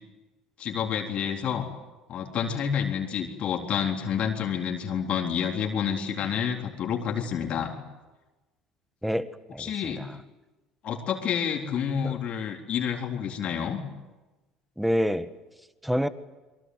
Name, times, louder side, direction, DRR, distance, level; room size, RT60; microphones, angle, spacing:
voice 1, 0.6-1.7 2.1-7.7 9.6-10.1 10.8-13.8, left 8 dB, 55° left, 1 dB, 3.8 m, -29 dB
voice 2, 9.0-10.2 12.0-12.2 14.8-15.3 15.8-16.1, equal, ahead, 12 dB, 1.7 m, -28 dB
26.0 x 23.5 x 8.0 m, 1.2 s
hypercardioid pair, 65°, 3 cm